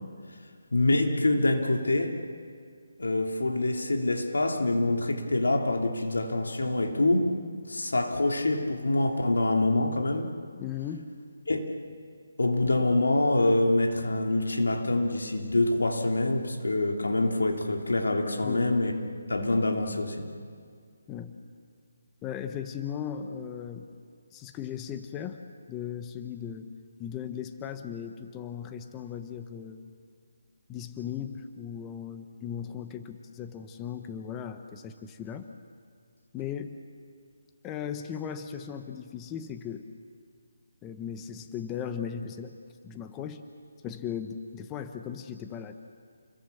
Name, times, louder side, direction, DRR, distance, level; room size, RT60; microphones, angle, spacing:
voice 1, 0.7-2.2 3.0-7.3 7.7-10.3 11.5-11.7 12.4-18.9 19.3-20.3, left 2 dB, 90° left, 3 dB, 3.1 m, -25 dB
voice 2, 10.6-11.1 18.4-18.7 21.1-21.4 22.2-23.9 24.3-25.4 25.7-26.7 27.0-29.9 30.7-35.5 36.3-36.8 37.6-39.8 40.8-42.6 42.8-43.4 43.8-45.7, left 8 dB, 15° left, 8 dB, 1.1 m, -37 dB
29.5 x 22.0 x 7.1 m, 2.1 s
hypercardioid pair, 160°, 0 cm